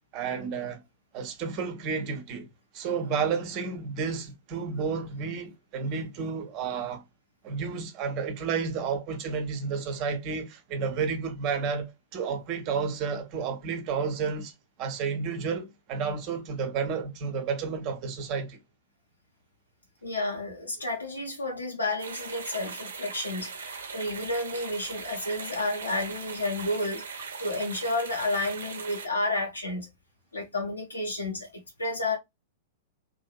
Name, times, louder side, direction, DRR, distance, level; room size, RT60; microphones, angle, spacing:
voice 1, 0.1-0.8 1.1-2.5 2.7-7.0 7.4-14.5 14.8-18.6, right 5 dB, 35° right, 0.8 m, -31 dB
voice 2, 20.0-29.9 30.3-31.5 31.8-32.2, left 2 dB, 80° left, 0.9 m, -31 dB
sound 1, 22.0-29.1, right 5 dB, 65° right, 0.8 m, -40 dB
3.0 x 2.6 x 2.3 m
figure-of-eight pair, 100°, 0 cm